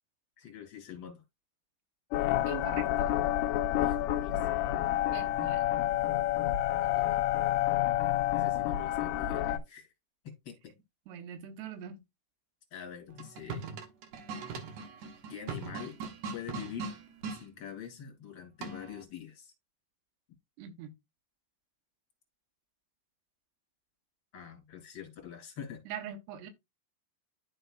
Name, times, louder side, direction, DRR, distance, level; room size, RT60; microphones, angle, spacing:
voice 1, 0.4-1.2 3.8-4.4 6.8-7.2 8.3-9.9 10.2-10.7 12.7-13.7 15.3-16.0 16.3-16.9 17.3-19.5 24.3-25.8, left 9 dB, 30° left, 3.0 m, -45 dB
sound 1, 2.1-9.6, left 13 dB, 85° left, 2.7 m, -29 dB
voice 2, 2.5-3.1 5.1-5.7 11.1-12.0 20.6-20.9 25.9-26.5, right 9 dB, 85° right, 3.2 m, -42 dB
sound 2, 13.1-17.4 18.6-19.0, right 4 dB, 65° right, 2.0 m, -40 dB
12.5 x 4.4 x 2.4 m
omnidirectional pair, 4.7 m